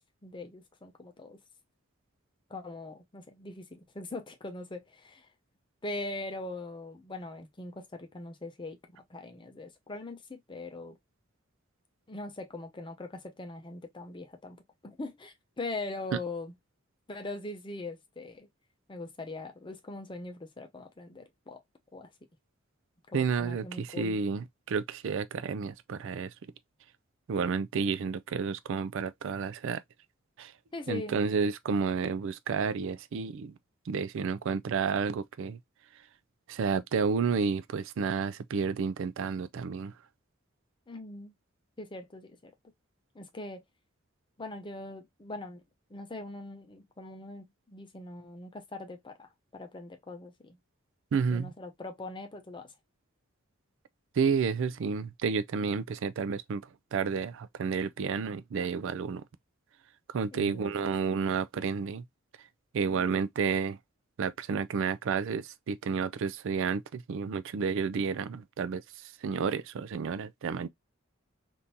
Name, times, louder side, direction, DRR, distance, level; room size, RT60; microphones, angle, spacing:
voice 1, 0.2-1.4 2.5-5.3 5.8-11.0 12.1-14.6 14.8-16.5 17.1-18.5 18.9-21.6 21.9-22.1 23.1-24.2 30.7-31.2 40.9-41.3 41.8-42.5 43.1-43.6 44.4-45.6 45.9-50.6 51.3-52.7 60.3-60.9 62.8-63.3, left 2 dB, 25° left, 0.7 m, -41 dB
voice 2, 23.1-26.3 27.3-29.8 30.4-30.5 30.9-33.5 33.9-35.6 36.5-39.9 51.1-51.5 54.2-56.6 56.9-59.2 60.1-62.0 62.7-63.8 64.2-68.8 69.2-70.7, right 5 dB, 65° right, 0.4 m, -31 dB
3.6 x 2.6 x 2.7 m
head